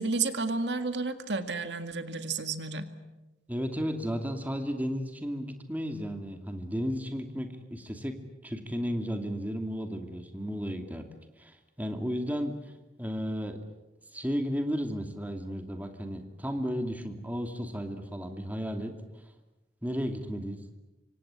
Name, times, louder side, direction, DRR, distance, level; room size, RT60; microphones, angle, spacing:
voice 1, 0.0-2.9, right 4 dB, 70° right, 8 dB, 2.0 m, -31 dB
voice 2, 3.5-8.2 8.4-11.1 11.4-12.5 13.0-13.6 14.1-18.9 19.8-20.6, equal, 10° right, 5 dB, 2.6 m, -33 dB
26.5 x 25.0 x 8.3 m, 1.0 s
head